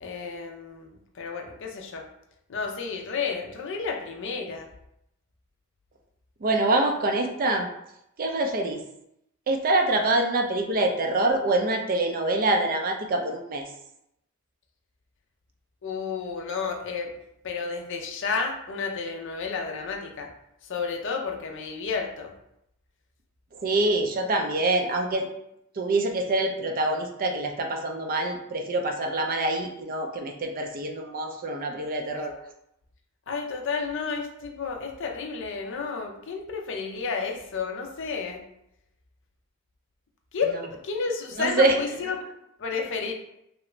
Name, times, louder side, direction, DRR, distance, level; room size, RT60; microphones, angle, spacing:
voice 1, 0.0-2.0 2.5-4.7 15.8-17.1 17.4-20.3 20.6-22.3 32.1-32.2 33.3-38.4 40.3-42.2 42.6-43.1, left 5 dB, 55° left, 2 dB, 0.5 m, -31 dB
voice 2, 6.4-7.7 8.2-8.8 9.5-13.7 23.6-25.3 25.8-32.3 41.4-41.8, right 2 dB, 40° right, 3 dB, 0.4 m, -25 dB
3.0 x 2.4 x 3.1 m, 0.79 s
head